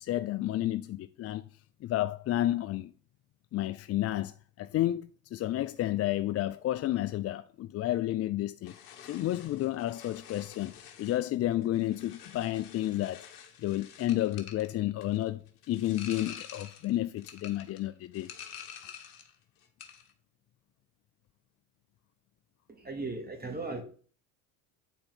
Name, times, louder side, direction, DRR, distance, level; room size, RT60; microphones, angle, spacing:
voice 1, 0.0-1.5 1.8-2.9 3.5-8.7 9.0-13.3 13.6-18.3, left 14 dB, 35° left, 0.4 m, -31 dB
sound 1, 8.6-19.4 19.6-20.1, left 8 dB, 85° left, 1.6 m, -49 dB
voice 2, 22.7-23.8, right 3 dB, 20° right, 2.4 m, -37 dB
9.0 x 4.4 x 5.9 m
hypercardioid pair, 80°, 45 cm